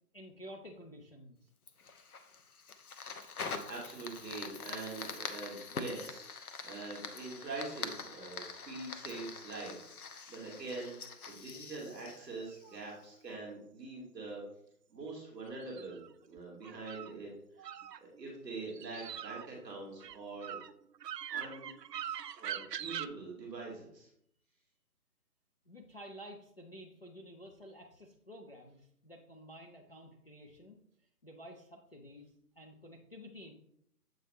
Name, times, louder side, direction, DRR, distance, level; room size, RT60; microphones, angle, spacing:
voice 1, 0.1-1.5 25.7-30.8 31.2-33.5, equal, 40° left, 0 dB, 0.5 m, -51 dB
Fire, 1.7-13.0, left 5 dB, 65° left, 0.8 m, -44 dB
voice 2, 3.7-14.4 14.9-17.3 17.5-17.7 18.0-20.6 21.3-21.7 22.4-24.1, right 3 dB, ahead, -27 dB, 0.8 m, -44 dB
sound 1, 11.8-12.8 15.5-17.1 17.6-18.3 18.7-23.1, right 10 dB, 85° right, 0.6 m, -43 dB
7.7 x 3.4 x 4.2 m, 0.73 s
hypercardioid pair, 165°, 48 cm